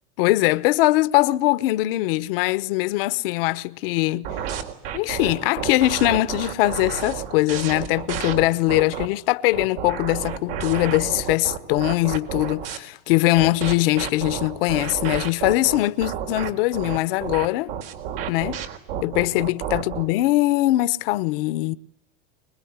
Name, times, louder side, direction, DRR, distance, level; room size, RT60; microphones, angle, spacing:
voice 1, 0.2-4.3 4.9-17.7 18.3-18.6 19.0-21.7, left 18 dB, 75° left, 1.1 m, -21 dB
sound 1, 4.2-9.1 9.5-12.8 13.4-20.1, right 9 dB, 85° right, 4.1 m, -31 dB
24.5 x 22.0 x 9.7 m
supercardioid pair, 155°, 29 cm